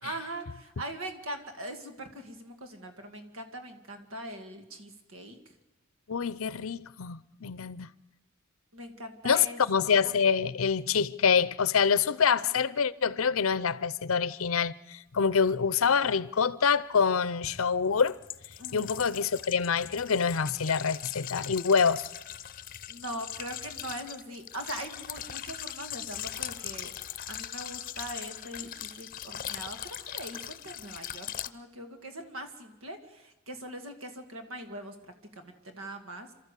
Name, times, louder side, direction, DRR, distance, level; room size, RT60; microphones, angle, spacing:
voice 1, 0.0-5.4 8.7-9.6 18.6-18.9 22.9-27.0 27.3-36.3, right 1 dB, 75° right, 2.2 m, -41 dB
voice 2, 6.1-7.9 9.2-18.2 18.7-22.1, left 6 dB, 75° left, 0.6 m, -26 dB
sound 1, 16.1-16.2 17.4-31.5, left 11 dB, 45° left, 0.7 m, -40 dB
28.0 x 13.5 x 8.3 m
head